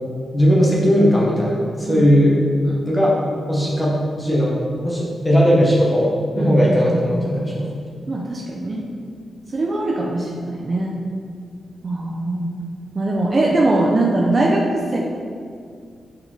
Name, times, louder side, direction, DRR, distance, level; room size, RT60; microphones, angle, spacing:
voice 1, 0.3-2.4 2.8-3.2 3.5-4.5 4.8-7.7, equal, 10° left, -5 dB, 0.7 m, -17 dB
voice 2, 6.9-7.2 8.1-8.8 9.5-10.9 11.8-12.5 12.9-15.0, right 2 dB, 30° right, -2 dB, 0.3 m, -21 dB
4.7 x 3.9 x 2.7 m, 2.2 s
wide cardioid pair, 175°, 0 cm